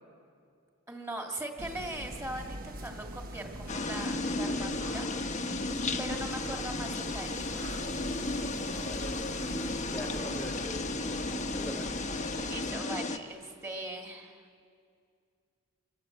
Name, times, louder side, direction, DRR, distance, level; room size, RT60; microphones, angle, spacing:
voice 1, 0.9-5.1 6.0-7.5 12.3-14.5, right 1 dB, 15° right, 2 dB, 2.0 m, -40 dB
sound 1, 1.6-12.7, right 1 dB, 40° right, 1.3 m, -42 dB
sound 2, 3.7-13.2, left 2 dB, 35° left, 1.1 m, -34 dB
voice 2, 8.6-11.1 11.5-11.9, left 1 dB, 5° left, 1 dB, 1.5 m, -43 dB
27.0 x 23.0 x 7.9 m, 2.3 s
head